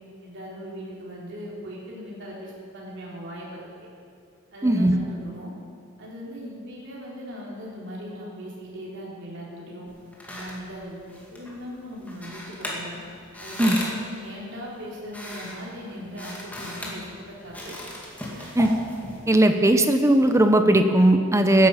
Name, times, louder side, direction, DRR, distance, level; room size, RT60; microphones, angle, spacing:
voice 1, 0.2-3.6 4.5-5.5 6.0-9.9 10.3-13.0 13.4-17.8 18.3-18.5, equal, 60° right, -4 dB, 3.9 m, -39 dB
voice 2, 4.6-4.9 13.6-13.8 18.6-18.7 19.3-21.7, right 1 dB, 15° right, 7 dB, 0.8 m, -18 dB
sound 1, 9.9-19.6, left 1 dB, 10° left, 2.2 m, -38 dB
15.0 x 10.0 x 5.7 m, 2.3 s
head